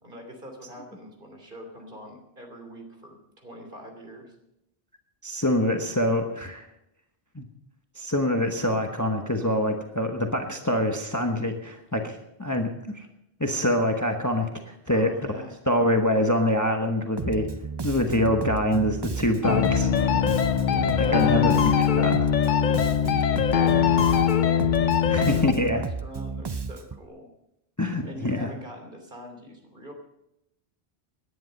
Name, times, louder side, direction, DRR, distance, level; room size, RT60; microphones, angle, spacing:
voice 1, 0.0-4.3 14.9-15.6 20.7-21.4 22.5-24.8 25.1-27.3 28.0-29.9, equal, 50° right, 3 dB, 3.1 m, -43 dB
voice 2, 5.2-6.7 7.3-7.4 8.0-13.0 13.4-15.1 15.7-17.5 17.8-19.9 20.5-20.6 21.0-22.3 25.1-25.9 27.8-28.5, left 1 dB, 15° left, 4 dB, 1.1 m, -25 dB
Bass guitar, 17.2-27.1, right 4 dB, 35° right, 0.4 m, -33 dB
sound 1, 19.4-25.5, left 8 dB, 50° left, 0.7 m, -22 dB
Acoustic guitar, 19.7-23.0, right 2 dB, 80° right, 5.7 m, -42 dB
18.0 x 10.5 x 5.3 m, 0.84 s
omnidirectional pair, 1.1 m